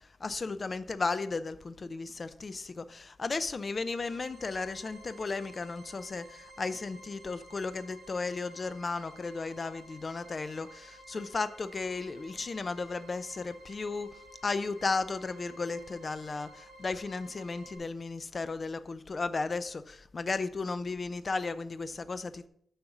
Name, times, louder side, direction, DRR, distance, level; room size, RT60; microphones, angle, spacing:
voice 1, 0.0-14.1 14.4-22.5, left 4 dB, 35° left, 0.5 m, -35 dB
sound 1, 3.6-17.8, right 1 dB, 50° right, 2.6 m, -53 dB
7.1 x 5.2 x 5.8 m
wide cardioid pair, 140°, 0 cm